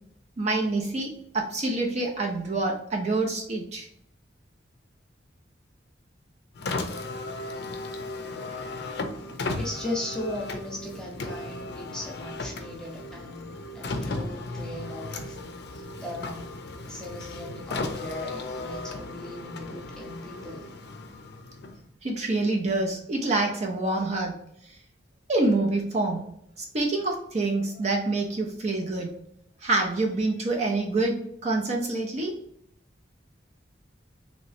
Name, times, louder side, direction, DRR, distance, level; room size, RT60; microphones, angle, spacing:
voice 1, 0.4-3.9 22.0-24.4 25.3-26.3 26.7-29.1 29.6-32.3, right 2 dB, 35° right, 0 dB, 0.5 m, -26 dB
Car, 6.5-21.9, left 2 dB, 60° left, 0.4 m, -36 dB
voice 2, 9.5-13.5 13.7-15.4 15.7-16.5 16.9-20.7, left 1 dB, 5° left, -2 dB, 0.7 m, -37 dB
3.1 x 2.9 x 2.6 m, 0.71 s
head